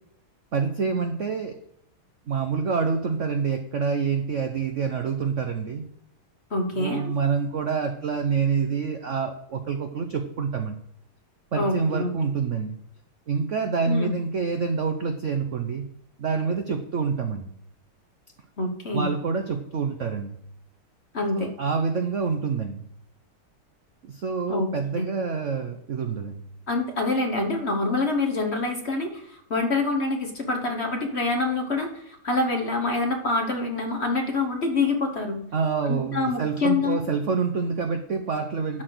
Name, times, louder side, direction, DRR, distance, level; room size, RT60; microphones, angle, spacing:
voice 1, 0.5-1.6 2.3-5.8 6.7-10.8 11.5-12.8 13.3-15.9 16.2-17.5 18.9-20.4 21.3-22.8 24.1-26.4 35.5-38.8, right 5 dB, 65° right, 6 dB, 0.7 m, -27 dB
voice 2, 6.5-7.1 11.6-12.1 13.9-14.2 18.6-19.1 21.1-21.5 24.5-24.7 25.0-25.1 26.7-35.4 35.8-37.0, left 3 dB, 35° left, 3 dB, 1.2 m, -26 dB
12.0 x 4.4 x 7.6 m, 0.71 s
omnidirectional pair, 2.3 m